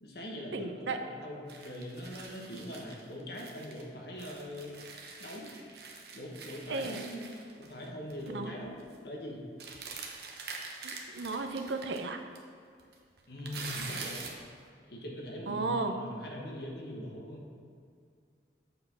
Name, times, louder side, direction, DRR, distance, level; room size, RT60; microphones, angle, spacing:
voice 1, 0.0-4.7 5.2-5.5 6.1-9.4 13.3-14.2 14.9-17.5, left 1 dB, 60° left, -1 dB, 1.3 m, -42 dB
voice 2, 0.5-1.0 6.7-7.0 8.3-8.6 10.8-12.2 15.5-16.0, right 3 dB, 80° right, 6 dB, 0.6 m, -34 dB
sound 1, 1.5-3.8 4.2-7.9 8.1-8.3 8.6-9.0 9.6-12.0 12.4-12.5 12.8-14.4, right 4 dB, 60° right, 0.9 m, -44 dB
7.6 x 4.3 x 5.7 m, 2.3 s
head